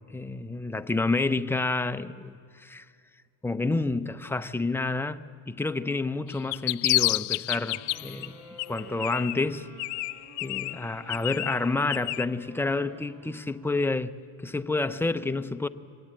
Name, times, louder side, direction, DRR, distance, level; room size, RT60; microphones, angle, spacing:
voice 1, 0.1-2.9 3.4-8.4 8.7-9.7 10.4-14.1 14.4-15.7, left 3 dB, 5° left, 0.5 m, -29 dB
sound 1, 6.3-8.3 8.6-9.5 9.8-12.3, left 24 dB, 70° left, 0.5 m, -29 dB
sound 2, 7.5-14.0, right 3 dB, 75° right, 6.0 m, -50 dB
24.0 x 19.5 x 8.9 m
cardioid pair, 125°, 44 cm